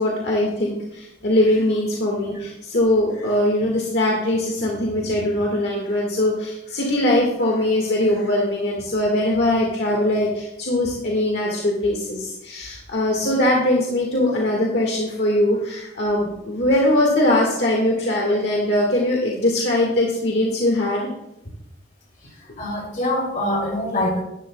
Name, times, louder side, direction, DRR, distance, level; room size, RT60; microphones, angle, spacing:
voice 1, 0.0-21.1, left 1 dB, 65° left, -2 dB, 1.7 m, -21 dB
voice 2, 22.6-24.2, left 1 dB, 45° left, -1 dB, 2.9 m, -24 dB
12.0 x 11.0 x 2.3 m, 0.86 s
head